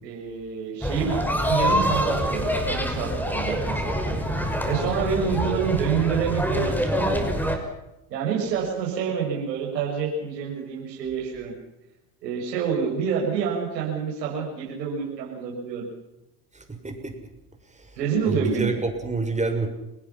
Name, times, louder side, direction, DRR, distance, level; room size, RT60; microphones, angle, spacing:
voice 1, 0.0-4.0 4.6-7.3 8.1-11.5 12.2-15.9 18.0-18.7, right 7 dB, 90° right, -1 dB, 7.0 m, -27 dB
sound 1, 0.8-7.6, equal, 5° left, 6.1 m, -25 dB
voice 2, 16.5-17.1 17.8-17.9 18.2-19.7, right 3 dB, 15° right, 5 dB, 6.9 m, -28 dB
30.0 x 20.0 x 6.0 m, 0.93 s
hypercardioid pair, 85°, 48 cm